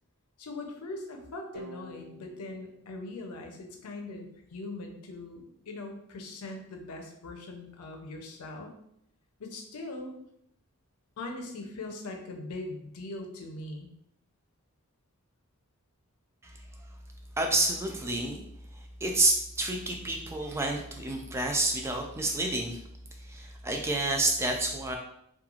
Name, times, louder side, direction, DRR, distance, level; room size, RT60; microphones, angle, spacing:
voice 1, 0.4-8.7 9.4-10.1 11.2-13.9, left 2 dB, 85° left, 3 dB, 0.5 m, -41 dB
sound 1, 1.5-4.3, right 2 dB, 55° right, 1.4 m, -50 dB
voice 2, 17.4-18.5 18.7-22.8 23.2-25.0, right 2 dB, 10° right, 2 dB, 0.3 m, -29 dB
3.0 x 2.3 x 2.4 m, 0.73 s
head